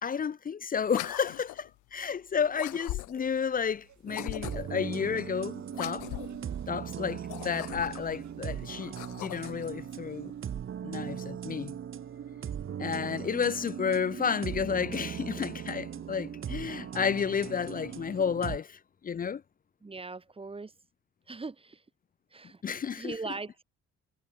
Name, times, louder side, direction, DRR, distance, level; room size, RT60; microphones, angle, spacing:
voice 1, 0.0-6.1 6.7-10.3 10.8-11.8 12.8-19.4 22.6-23.1, left 7 dB, 30° left, 0.4 m, -31 dB
sound 1, 0.8-1.7 2.5-3.3 4.1-4.8 5.7-6.4 7.2-8.1 8.8-9.7, left 19 dB, 85° left, 0.6 m, -40 dB
sound 2, 3.5-10.6, right 11 dB, 70° right, 3.5 m, -64 dB
sound 3, 4.1-18.6, right 9 dB, 45° right, 0.9 m, -39 dB
voice 2, 19.8-20.7 21.3-21.8 22.3-22.6 23.0-23.6, right 3 dB, 20° right, 1.1 m, -40 dB
cardioid pair, 90°, 30 cm